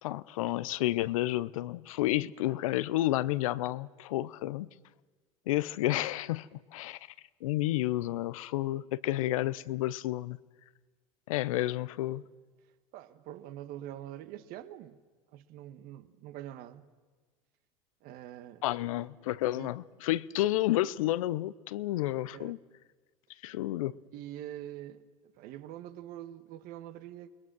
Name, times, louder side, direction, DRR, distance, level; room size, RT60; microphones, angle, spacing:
voice 1, 0.0-4.7 5.5-7.0 7.4-10.4 11.3-12.2 18.6-22.6 23.4-24.0, left 15 dB, 75° left, 0.7 m, -31 dB
voice 2, 12.9-15.0 15.3-16.8 18.0-18.6 18.9-19.1 19.5-19.7 22.3-22.6 24.1-27.3, right 12 dB, 60° right, 1.5 m, -44 dB
29.0 x 21.0 x 6.2 m
hypercardioid pair, 80°, 17 cm